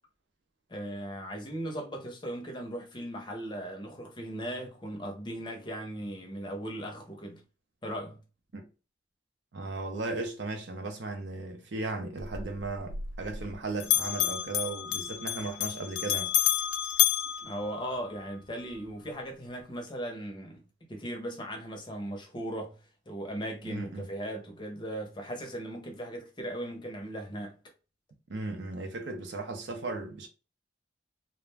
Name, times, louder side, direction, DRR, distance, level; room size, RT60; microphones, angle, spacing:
voice 1, 0.7-7.4 7.8-8.2 17.4-22.8 23.1-27.6, right 1 dB, 25° left, 0.6 m, -38 dB
voice 2, 9.5-16.4 23.6-24.1 28.3-30.3, right 3 dB, 65° right, 0.6 m, -36 dB
Bell, 12.2-13.6 13.8-18.3, left 12 dB, 85° left, 0.3 m, -30 dB
2.4 x 2.1 x 3.2 m
head